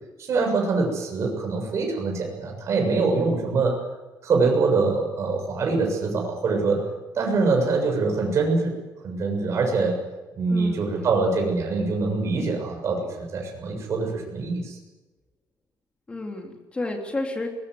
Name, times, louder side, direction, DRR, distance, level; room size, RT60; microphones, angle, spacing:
voice 1, 0.2-3.8 4.2-6.8 7.2-8.7 9.0-10.0 10.4-14.8, right 3 dB, 45° right, 1 dB, 7.2 m, -24 dB
voice 2, 10.5-11.1 16.1-17.5, left 2 dB, 15° left, 2 dB, 3.4 m, -31 dB
22.0 x 21.0 x 8.0 m, 1.1 s
cardioid pair, 170°, 7 cm